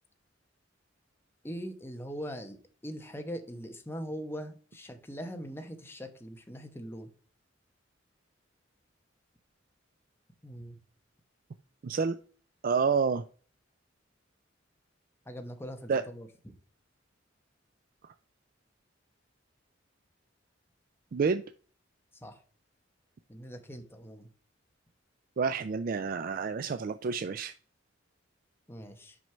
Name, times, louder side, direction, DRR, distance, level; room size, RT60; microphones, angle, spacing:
voice 1, 1.4-2.6 2.8-7.1 10.4-10.8 15.3-16.6 22.1-22.4 23.3-24.3 28.7-29.2, equal, 10° left, 6 dB, 1.0 m, -41 dB
voice 2, 11.8-12.2 12.6-13.2 15.9-16.0 18.0-18.1 21.1-21.4 25.4-27.5, right 5 dB, 45° right, 10 dB, 0.4 m, -29 dB
6.2 x 5.3 x 4.4 m, 0.42 s
head